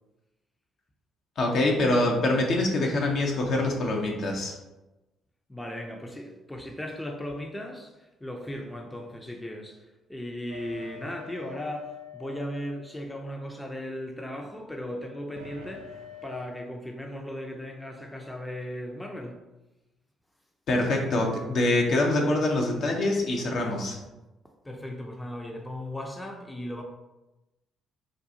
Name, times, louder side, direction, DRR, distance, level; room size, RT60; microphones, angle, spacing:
voice 1, 1.4-4.6 20.7-24.0, left 2 dB, 55° left, 0 dB, 0.6 m, -25 dB
voice 2, 5.5-9.8 10.1-19.4 24.6-26.8, left 1 dB, 10° left, 2 dB, 0.5 m, -37 dB
sound 1, 10.5-13.5 15.4-16.4, left 5 dB, 80° right, 0.4 m, -45 dB
3.7 x 2.3 x 2.6 m, 1.0 s
hypercardioid pair, 45°, 0 cm